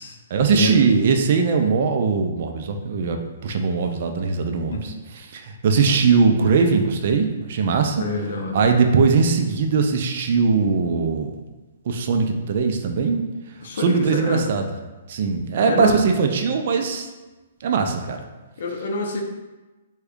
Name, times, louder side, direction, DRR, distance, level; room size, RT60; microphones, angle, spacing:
voice 1, 0.3-8.0 8.5-11.3 11.9-13.2 13.7-17.1 17.6-18.2, right 5 dB, 50° right, 5 dB, 0.4 m, -20 dB
voice 2, 8.0-8.6 13.6-14.5 15.6-16.0 18.6-19.2, left 3 dB, 60° left, 2 dB, 0.6 m, -26 dB
3.4 x 2.2 x 3.6 m, 1.2 s
hypercardioid pair, 160°, 0 cm